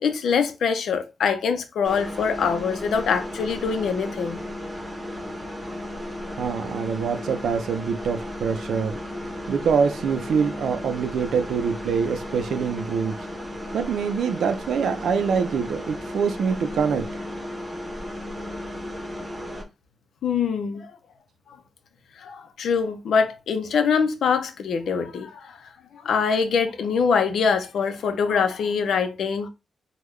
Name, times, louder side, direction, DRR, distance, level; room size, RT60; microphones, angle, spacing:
voice 1, 0.0-4.4 20.2-20.9 22.2-25.5 25.9-29.5, left 6 dB, 75° left, 0.6 m, -24 dB
sound 1, 1.8-19.6, left 1 dB, 15° right, 1.0 m, -34 dB
voice 2, 6.4-9.0 9.5-13.3 13.7-17.1, right 6 dB, 80° right, 0.5 m, -25 dB
3.6 x 2.3 x 3.1 m
cardioid pair, 115°, 0 cm